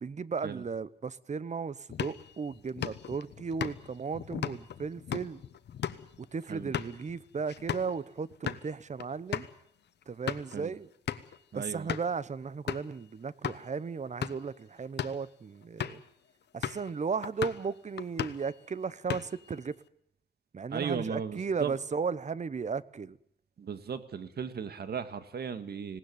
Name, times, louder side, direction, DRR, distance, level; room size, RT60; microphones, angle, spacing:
voice 1, 0.0-5.4 6.3-9.4 10.1-10.9 11.5-16.0 16.5-19.7 20.5-23.2, right 5 dB, 40° right, 0.9 m, -35 dB
sound 1, 1.9-7.9 8.3-8.6 9.0-9.1 9.3-9.5 10.0-10.6 11.1-11.4 11.9-12.2 12.7-12.9 13.4-13.6 14.1-14.5 14.8-15.2 15.8-16.1 16.6-16.9 17.2-17.7 18.0-18.5 18.9-19.5, left 9 dB, 80° left, 1.1 m, -37 dB
voice 2, 11.5-11.9 20.7-21.7 23.6-26.0, right 6 dB, 65° right, 1.8 m, -36 dB
19.5 x 18.0 x 9.6 m
cardioid pair, 75°, 17 cm